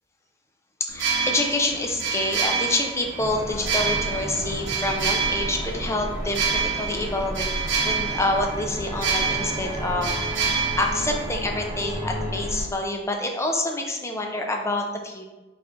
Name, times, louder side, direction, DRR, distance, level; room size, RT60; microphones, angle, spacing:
voice 1, 0.8-7.5 7.8-15.2, left 2 dB, 15° left, 2 dB, 0.4 m, -27 dB
sound 1, 0.9-11.7, right 5 dB, 65° right, 0.9 m, -28 dB
sound 2, 3.2-12.6, equal, 15° right, 0.9 m, -32 dB
4.3 x 4.1 x 2.5 m, 1.1 s
head